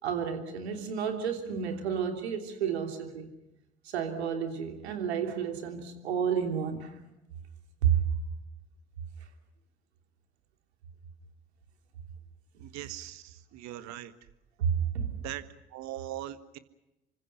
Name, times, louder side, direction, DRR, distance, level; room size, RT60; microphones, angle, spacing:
voice 1, 0.0-3.3 3.8-7.0 7.8-8.0 14.6-15.2, right 8 dB, 75° right, 5 dB, 3.3 m, -31 dB
voice 2, 12.6-14.1 15.2-15.4 15.7-16.6, right 13 dB, 55° right, 12 dB, 1.7 m, -40 dB
28.5 x 25.0 x 5.7 m, 0.93 s
figure-of-eight pair, 55°, 32 cm